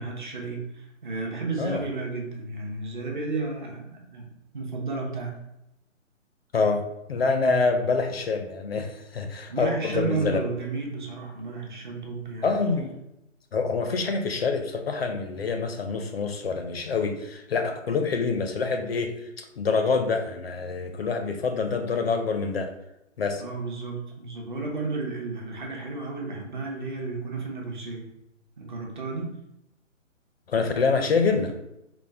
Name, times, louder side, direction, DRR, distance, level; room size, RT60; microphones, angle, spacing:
voice 1, 0.0-4.3 4.5-5.4 9.5-12.5 23.4-28.1 28.6-29.3, right 3 dB, 40° right, 0 dB, 0.7 m, -32 dB
voice 2, 6.5-6.8 7.1-10.4 12.4-13.0 13.5-22.7 23.2-23.4 30.5-31.5, left 4 dB, 50° left, 6 dB, 0.4 m, -26 dB
4.2 x 2.0 x 3.3 m, 0.87 s
hypercardioid pair, 160°, 39 cm